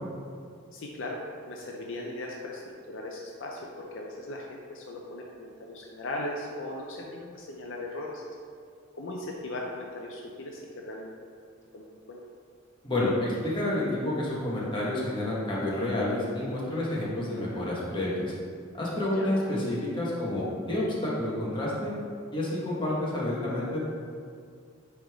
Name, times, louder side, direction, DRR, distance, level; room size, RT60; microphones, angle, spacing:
voice 1, 0.7-1.2 1.5-8.2 8.9-11.1 11.7-12.2 19.1-19.3, left 1 dB, 65° left, -1 dB, 0.6 m, -38 dB
voice 2, 12.8-18.3 18.7-21.9 22.3-23.8, left 1 dB, 25° left, -6 dB, 1.4 m, -29 dB
8.8 x 3.5 x 3.6 m, 2.2 s
head